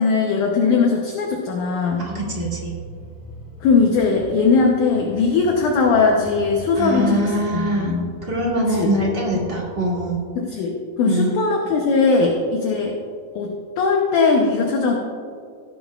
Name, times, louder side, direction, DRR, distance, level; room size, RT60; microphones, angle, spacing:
voice 1, 0.0-2.1 3.6-8.1 8.7-8.9 10.4-12.9 13.4-14.9, left 4 dB, 70° left, 0 dB, 2.1 m, -19 dB
sound 1, 1.9-10.2, right 1 dB, 5° left, 1.5 m, -40 dB
voice 2, 2.0-2.7 6.7-7.9 8.2-10.2 11.0-11.3, right 1 dB, 20° right, -5 dB, 1.6 m, -23 dB
17.5 x 9.5 x 2.4 m, 2.3 s
omnidirectional pair, 4.2 m